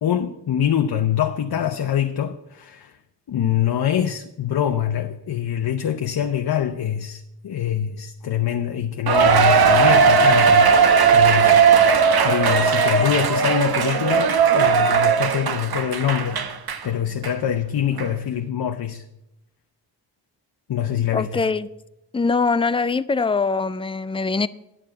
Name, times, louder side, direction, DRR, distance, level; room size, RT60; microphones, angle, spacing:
voice 1, 0.0-3.0 3.3-10.7 11.0-11.7 12.2-16.4 16.8-19.0 20.7-21.5, left 10 dB, 60° left, 0.7 m, -24 dB
Cheering, 9.1-16.8 17.2-17.3 18.0-18.1, right 6 dB, 60° right, 0.9 m, -17 dB
voice 2, 21.1-21.7 22.1-24.5, left 4 dB, 15° left, 0.3 m, -22 dB
9.9 x 7.0 x 7.5 m
wide cardioid pair, 95°, 43 cm